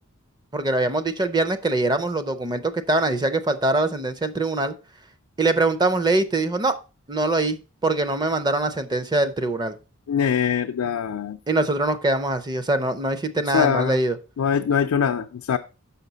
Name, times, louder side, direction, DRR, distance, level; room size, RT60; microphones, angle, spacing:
voice 1, 0.5-4.7 5.4-6.8 7.1-9.7 11.5-14.2, right 2 dB, 20° right, 0.5 m, -23 dB
voice 2, 10.1-11.4 13.5-14.0 14.4-15.6, left 7 dB, 85° left, 0.4 m, -22 dB
6.1 x 5.7 x 3.9 m
head